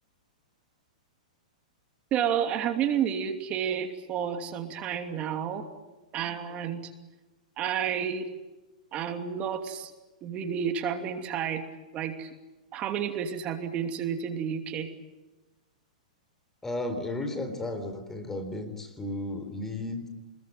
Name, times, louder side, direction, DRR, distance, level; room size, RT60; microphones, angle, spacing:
voice 1, 2.1-5.7 6.1-6.9 7.6-8.3 8.9-9.9 10.2-11.6 11.9-12.3 12.7-14.9, right 8 dB, 30° right, 6 dB, 2.8 m, -30 dB
voice 2, 16.6-20.1, left 2 dB, 10° left, 8 dB, 3.9 m, -34 dB
25.5 x 21.5 x 9.5 m, 1.1 s
hypercardioid pair, 135°, 4 cm